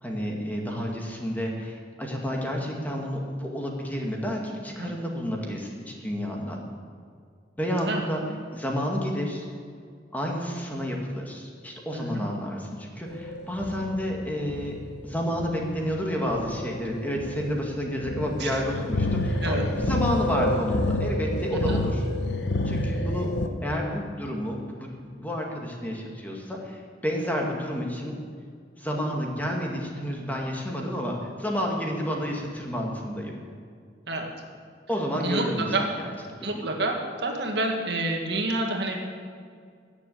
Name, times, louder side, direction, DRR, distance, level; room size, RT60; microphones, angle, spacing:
voice 1, 0.0-6.6 7.6-8.2 8.5-9.5 10.1-14.8 15.0-22.0 22.7-23.3 23.6-28.2 28.8-33.4 34.9-36.1 36.4-36.7, equal, 10° left, -1 dB, 2.0 m, -30 dB
voice 2, 11.9-12.3 18.4-18.5 19.4-19.7 21.5-21.8 34.1-34.3 35.2-35.8 36.4-36.9 37.2-39.0, right 2 dB, 65° right, 2 dB, 1.9 m, -28 dB
sound 1, 13.1-23.5, left 1 dB, 75° left, 1.1 m, -29 dB
16.0 x 7.2 x 8.5 m, 2.1 s
head